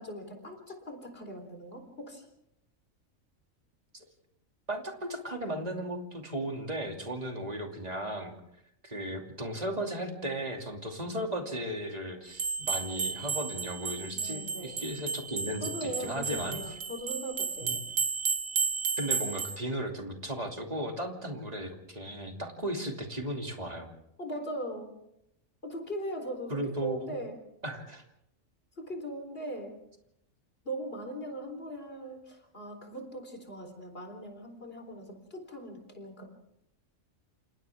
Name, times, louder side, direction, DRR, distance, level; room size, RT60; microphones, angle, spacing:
voice 1, 0.0-2.3 14.1-14.8 15.6-17.8 24.2-24.9 25.6-27.3 28.8-29.8 30.6-36.3, right 1 dB, 45° left, 4 dB, 4.3 m, -40 dB
voice 2, 4.7-8.3 8.8-16.6 17.6-17.7 19.0-23.9 26.5-27.1 27.6-28.0, right 1 dB, 30° right, 2 dB, 2.8 m, -36 dB
sound 1, 12.3-19.6, right 5 dB, 85° right, 1.5 m, -33 dB
28.5 x 27.5 x 3.6 m, 0.77 s
omnidirectional pair, 1.4 m